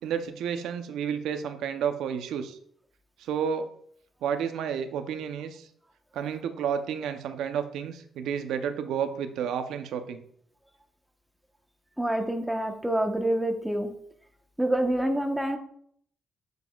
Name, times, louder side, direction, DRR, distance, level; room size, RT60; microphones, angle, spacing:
voice 1, 0.0-2.6 3.2-3.7 4.2-5.7 6.1-10.2, right 7 dB, 80° right, 8 dB, 0.7 m, -31 dB
voice 2, 12.0-13.9 14.6-15.6, right 1 dB, 5° right, 4 dB, 1.1 m, -27 dB
7.8 x 7.0 x 2.4 m, 0.64 s
cardioid pair, 90°, 0 cm